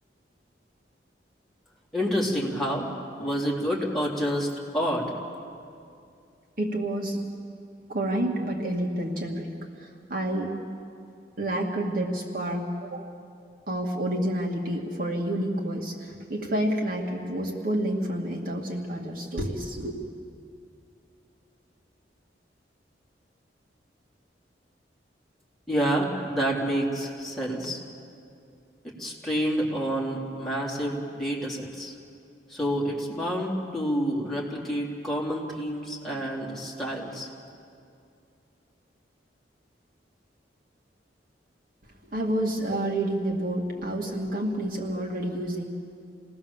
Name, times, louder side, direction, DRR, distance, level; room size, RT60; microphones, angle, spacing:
voice 1, 1.9-2.9 3.2-5.2 25.7-27.8 29.0-32.0 32.5-37.3, equal, ahead, -4 dB, 3.6 m, -28 dB
voice 2, 6.6-7.2 7.9-9.5 9.8-10.6 11.4-13.1 13.7-20.0 42.1-45.6, right 1 dB, 55° right, 0 dB, 2.3 m, -29 dB
28.5 x 19.0 x 7.3 m, 2.5 s
head